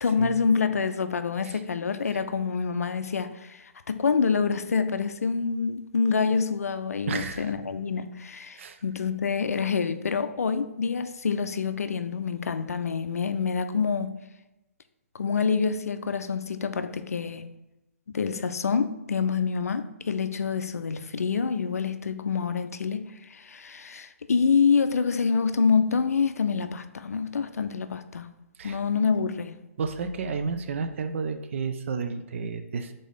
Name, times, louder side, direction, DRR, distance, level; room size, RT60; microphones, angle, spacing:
voice 1, 0.0-14.1 15.1-17.5 18.1-28.3 28.6-29.6, left 5 dB, 85° left, 0.4 m, -27 dB
voice 2, 7.1-7.5 8.6-8.8 28.6-28.8 29.8-32.9, right 5 dB, 60° right, 0.5 m, -31 dB
3.6 x 3.4 x 3.9 m
hypercardioid pair, 140°, 8 cm